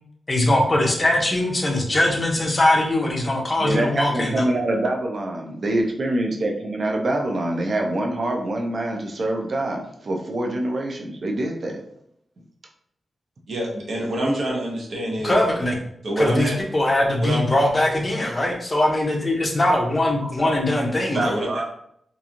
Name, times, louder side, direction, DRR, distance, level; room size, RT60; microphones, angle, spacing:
voice 1, 0.3-4.4 15.2-15.8 16.2-21.3, left 1 dB, 20° left, 0 dB, 0.5 m, -21 dB
voice 2, 3.6-11.8 20.4-20.5 21.1-21.7, right 1 dB, 40° right, 2 dB, 0.4 m, -25 dB
voice 3, 13.5-15.3 16.0-16.5 17.2-17.4 21.1-21.5, right 1 dB, 65° right, -2 dB, 0.8 m, -26 dB
2.9 x 2.5 x 2.4 m, 0.71 s
wide cardioid pair, 175°, 0 cm